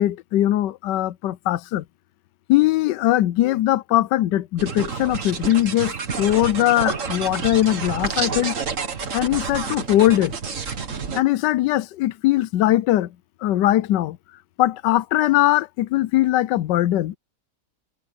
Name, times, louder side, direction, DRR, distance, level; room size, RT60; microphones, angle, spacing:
voice 1, 0.0-1.8 2.5-8.6 9.1-10.3 11.2-13.1 13.4-14.2 14.6-17.2, left 14 dB, 85° left, 1.3 m, -20 dB
sound 1, 4.6-11.2, right 5 dB, 50° right, 2.0 m, -29 dB
omnidirectional pair, 1.8 m